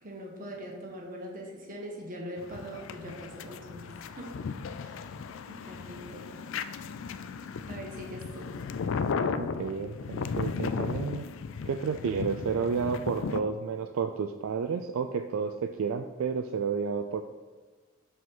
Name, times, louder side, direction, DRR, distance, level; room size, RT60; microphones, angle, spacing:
voice 1, 0.0-4.4 4.7-5.0 5.4-6.5 7.7-8.5, equal, 40° right, -1 dB, 1.6 m, -42 dB
sound 1, 2.4-13.4, left 5 dB, 65° left, 0.4 m, -35 dB
voice 2, 9.4-11.2 11.7-17.2, right 5 dB, 70° right, 7 dB, 0.4 m, -31 dB
5.6 x 5.0 x 6.0 m, 1.4 s
head